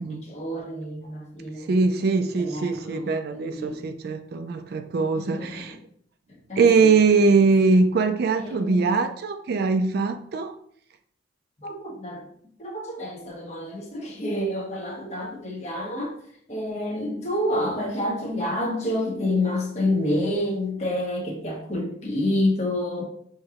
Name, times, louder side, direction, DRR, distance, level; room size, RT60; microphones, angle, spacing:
voice 1, 0.0-1.7 2.4-3.9 5.2-5.8 6.5-6.9 8.3-9.0 11.6-12.3 12.6-16.2 16.5-23.0, left 1 dB, 40° left, -2 dB, 1.1 m, -28 dB
voice 2, 1.7-5.8 6.6-10.6, right 4 dB, 60° right, 8 dB, 0.3 m, -22 dB
6.2 x 2.9 x 2.4 m, 0.64 s
head